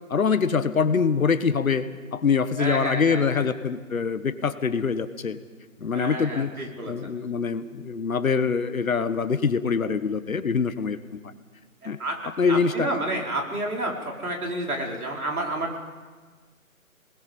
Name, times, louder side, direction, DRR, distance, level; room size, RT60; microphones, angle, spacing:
voice 1, 0.1-1.8 2.1-5.4 5.8-6.5 6.9-11.2 11.8-12.0 12.4-12.9, left 5 dB, 70° left, 11 dB, 1.5 m, -24 dB
voice 2, 2.6-3.5 5.9-6.9 12.0-15.8, right 1 dB, 85° right, 0 dB, 5.1 m, -30 dB
26.5 x 20.0 x 5.4 m, 1.4 s
figure-of-eight pair, 155°, 42 cm